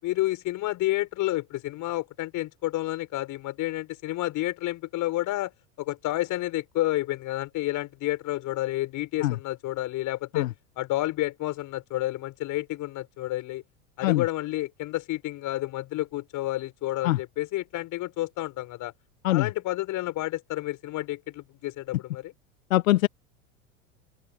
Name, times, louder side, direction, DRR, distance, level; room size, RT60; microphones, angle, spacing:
voice 1, 0.0-5.5 5.8-10.5 10.8-13.6 14.0-18.9 19.3-22.3, left 17 dB, 45° left, 6.5 m, -30 dB
voice 2, 22.7-23.1, left 16 dB, 70° left, 1.2 m, -22 dB
open air
hypercardioid pair, 85°, 42 cm